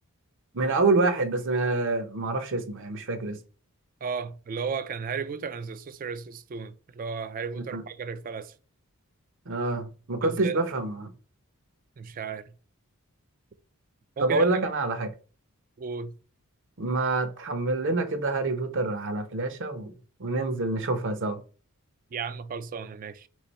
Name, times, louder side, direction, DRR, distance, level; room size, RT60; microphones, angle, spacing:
voice 1, 0.5-3.4 7.7-7.8 9.5-11.1 14.2-15.1 16.8-19.9 20.2-21.4, right 3 dB, 55° right, 0.7 m, -27 dB
voice 2, 4.0-8.5 10.2-10.6 12.0-12.4 14.2-14.6 15.8-16.1 22.1-23.3, right 5 dB, 40° right, 0.3 m, -34 dB
3.7 x 3.1 x 4.1 m
head